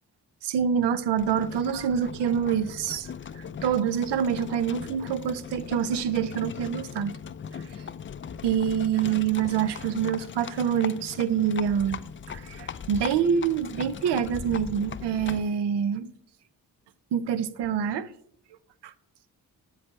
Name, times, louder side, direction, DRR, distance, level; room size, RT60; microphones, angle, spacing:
voice 1, 0.4-3.1 3.4-7.1 7.5-7.6 8.4-12.0 12.3-16.1 17.1-18.1 18.8-18.9, right 8 dB, 75° right, 0.6 m, -26 dB
Livestock farm animals working animals, 1.2-15.6, left 7 dB, 30° left, 0.4 m, -39 dB
7.8 x 3.3 x 6.2 m
supercardioid pair, 40°, 41 cm